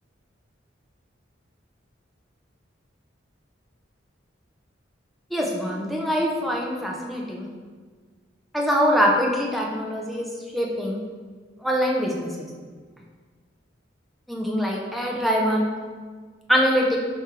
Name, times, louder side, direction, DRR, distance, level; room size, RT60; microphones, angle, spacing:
voice 1, 5.3-7.5 8.5-10.3 10.5-11.0 11.6-12.5 14.3-15.7 16.5-17.0, equal, ahead, -2 dB, 0.5 m, -23 dB
4.4 x 3.1 x 3.6 m, 1.5 s
head